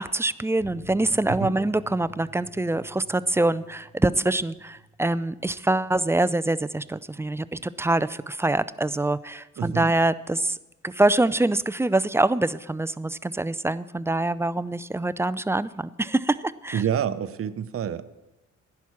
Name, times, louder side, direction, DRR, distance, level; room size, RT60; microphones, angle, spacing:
voice 1, 0.0-10.6 10.8-16.8, right 2 dB, 10° right, 15 dB, 0.4 m, -25 dB
sound 1, 0.6-7.7 8.0-8.1 8.4-8.5, right 2 dB, 5° left, 3.0 m, -50 dB
voice 2, 9.6-9.9 16.7-18.1, right 9 dB, 50° right, 11 dB, 0.7 m, -28 dB
11.0 x 6.0 x 8.4 m, 0.98 s
cardioid pair, 70°, 30 cm